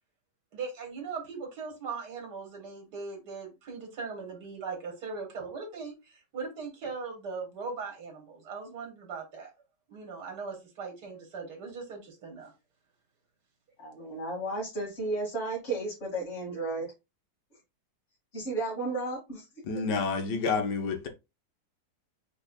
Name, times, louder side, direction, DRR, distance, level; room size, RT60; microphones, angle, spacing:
voice 1, 0.5-9.5 9.9-12.5, right 4 dB, 75° right, 2.0 m, -39 dB
voice 2, 13.8-16.9 18.3-19.4, right 2 dB, 40° left, 2.4 m, -33 dB
voice 3, 19.6-21.1, left 4 dB, 80° left, 1.5 m, -29 dB
5.3 x 4.4 x 2.3 m
omnidirectional pair, 1.8 m